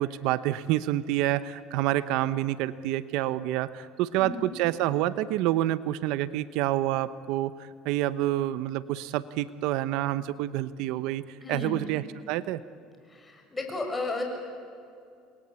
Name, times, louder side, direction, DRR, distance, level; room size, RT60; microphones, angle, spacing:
voice 1, 0.0-12.6, right 14 dB, 70° right, 15 dB, 0.9 m, -28 dB
voice 2, 4.2-4.5 11.4-11.8 13.1-14.2, left 3 dB, 15° left, 3 dB, 6.7 m, -33 dB
29.0 x 22.0 x 8.4 m, 2.4 s
supercardioid pair, 105°, 0 cm